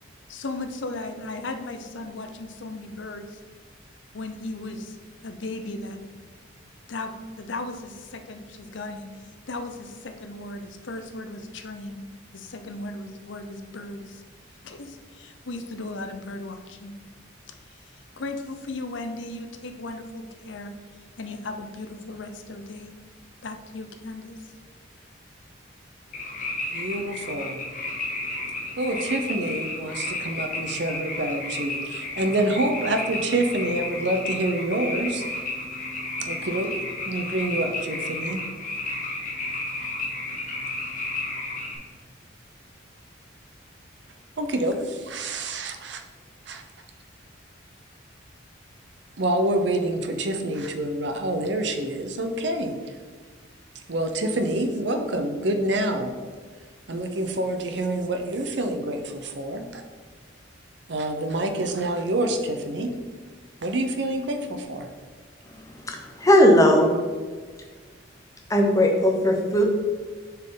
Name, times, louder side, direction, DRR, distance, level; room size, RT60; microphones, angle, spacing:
voice 1, 0.3-3.4 4.1-5.0 5.2-6.0 6.9-7.1 7.4-12.0 12.3-14.2 14.6-16.9 18.2-20.7 21.2-22.9 23.4-24.4, left 2 dB, 70° left, 6 dB, 0.6 m, -36 dB
sound 1, 26.1-41.8, left 2 dB, 40° left, 1.3 m, -32 dB
voice 2, 26.7-27.6 28.8-35.2 36.2-36.7 37.0-38.4 44.4-46.0 46.5-46.6 49.2-52.7 53.9-56.1 56.9-59.8 60.9-62.9 63.6-64.9, right 1 dB, 65° right, 6 dB, 0.7 m, -27 dB
voice 3, 65.8-66.9 68.5-69.6, equal, 15° left, 2 dB, 0.8 m, -18 dB
7.2 x 4.5 x 3.8 m, 1.5 s
head